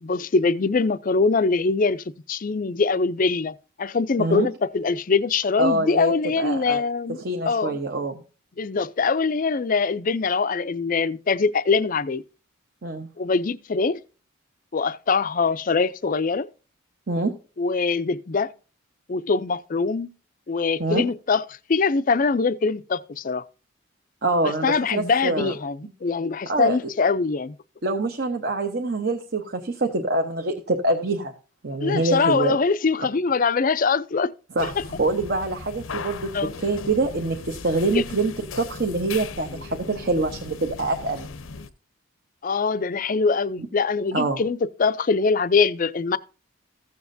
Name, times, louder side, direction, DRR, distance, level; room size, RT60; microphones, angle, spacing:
voice 1, 0.0-7.2 7.5-7.8 8.6-12.2 13.2-14.0 14.7-16.5 17.6-18.5 19.1-20.1 20.5-21.4 21.7-23.4 24.4-27.6 31.8-34.3 36.3-36.5 37.9-38.0 42.4-46.2, left 4 dB, 40° left, 0.4 m, -23 dB
voice 2, 5.6-6.8 7.2-8.2 12.8-13.1 17.1-17.3 20.8-21.0 24.2-25.5 26.5-26.8 27.8-31.3 31.6-32.6 34.5-34.7 35.0-41.3 44.1-44.4, right 2 dB, 50° right, 0.9 m, -25 dB
sound 1, 34.6-41.7, left 4 dB, 75° left, 0.7 m, -38 dB
15.0 x 7.1 x 2.6 m
head